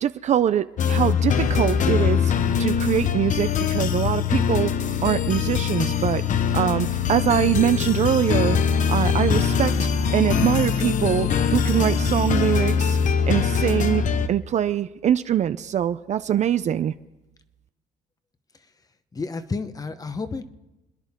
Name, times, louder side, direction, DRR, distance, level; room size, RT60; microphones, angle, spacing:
voice 1, 0.0-2.3 2.6-4.7 5.0-6.2 6.5-8.6 8.9-9.7 10.1-13.0 13.3-16.9, right 10 dB, 45° right, 13 dB, 0.5 m, -23 dB
sound 1, 0.8-14.3, left 7 dB, 50° left, 0.9 m, -22 dB
voice 2, 19.1-20.4, left 4 dB, 20° left, 11 dB, 1.0 m, -30 dB
27.0 x 10.5 x 3.6 m, 1.0 s
cardioid pair, 110°, 17 cm